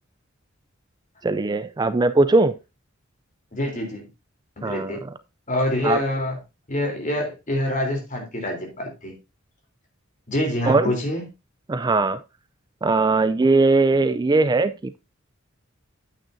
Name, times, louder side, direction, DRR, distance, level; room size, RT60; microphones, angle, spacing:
voice 1, 1.2-2.5 4.6-5.0 5.8-6.0 10.7-10.9 11.7-12.2 12.8-15.0, right 3 dB, 20° right, 0.4 m, -20 dB
voice 2, 3.5-4.1 4.6-5.0 5.5-6.4 6.7-9.1 10.3-11.2, left 1 dB, 40° left, 3.5 m, -26 dB
9.0 x 8.8 x 2.6 m
head